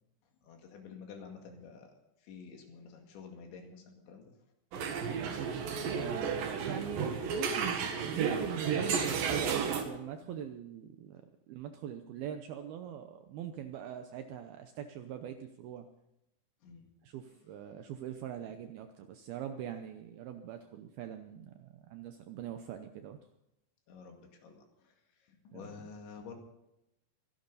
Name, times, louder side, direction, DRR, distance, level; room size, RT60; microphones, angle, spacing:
voice 1, 0.4-1.9 2.2-4.3 10.2-10.4 16.6-16.9 17.7-17.8 23.9-24.9 25.3-26.4, left 5 dB, 80° left, 3 dB, 4.6 m, -50 dB
sound 1, 4.7-9.8, right 6 dB, 60° right, 3.0 m, -33 dB
voice 2, 5.8-11.2 11.5-15.9 17.0-23.2 25.5-25.9, right 9 dB, 75° right, 7 dB, 2.3 m, -42 dB
25.0 x 12.0 x 4.1 m, 0.84 s
omnidirectional pair, 5.2 m